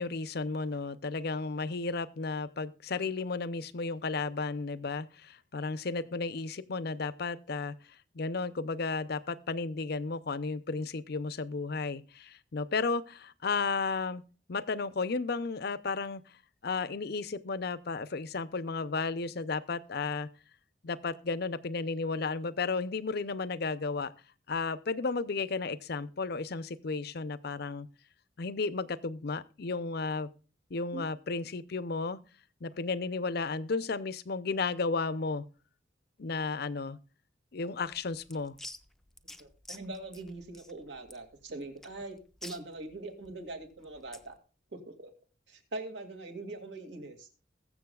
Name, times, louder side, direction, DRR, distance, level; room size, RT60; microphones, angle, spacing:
voice 1, 0.0-7.7 8.1-14.2 14.5-16.2 16.6-20.3 20.8-24.1 24.5-27.9 28.4-30.3 30.7-32.2 32.6-35.4 36.2-37.0 37.5-38.6, left 4 dB, 60° left, 16 dB, 0.6 m, -33 dB
sound 1, 37.8-44.4, left 1 dB, ahead, 0.6 m, -50 dB
voice 2, 39.4-42.2 42.4-44.4 44.7-45.1 45.5-47.3, right 2 dB, 70° right, 5 dB, 2.5 m, -42 dB
21.5 x 7.2 x 2.4 m, 0.36 s
head